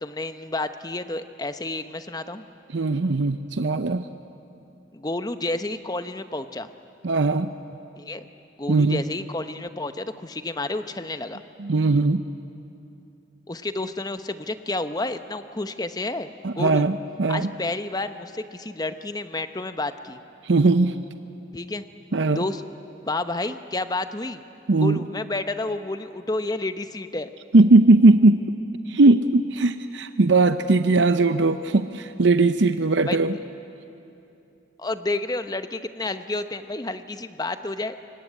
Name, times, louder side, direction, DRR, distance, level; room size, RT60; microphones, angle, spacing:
voice 1, 0.0-2.4 4.9-6.7 8.0-8.3 8.6-11.4 13.5-16.9 17.3-20.2 21.5-21.8 22.3-22.6 23.0-24.4 24.8-27.3 33.1-33.2 34.8-38.0, left 2 dB, 20° left, 10 dB, 0.8 m, -30 dB
voice 2, 2.7-4.0 7.0-7.5 8.7-9.0 11.6-12.2 16.4-17.5 20.4-21.0 22.1-22.4 24.7-25.0 27.5-28.4 28.9-33.4, right 2 dB, 70° right, 10 dB, 0.7 m, -19 dB
25.5 x 22.5 x 9.9 m, 2.8 s
head